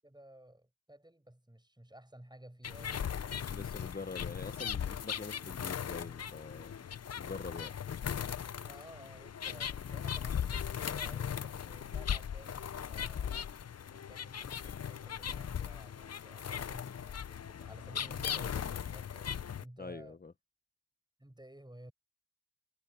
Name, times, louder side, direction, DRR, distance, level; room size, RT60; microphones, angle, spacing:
voice 1, 0.0-3.5 4.6-4.7 8.6-20.2 21.2-21.9, right 1 dB, 15° right, 7.2 m, -55 dB
sound 1, 2.6-19.6, left 8 dB, 55° left, 0.5 m, -38 dB
voice 2, 3.5-6.7 7.2-7.7 19.8-20.3, left 4 dB, 30° left, 0.8 m, -44 dB
cardioid pair, 40°, 31 cm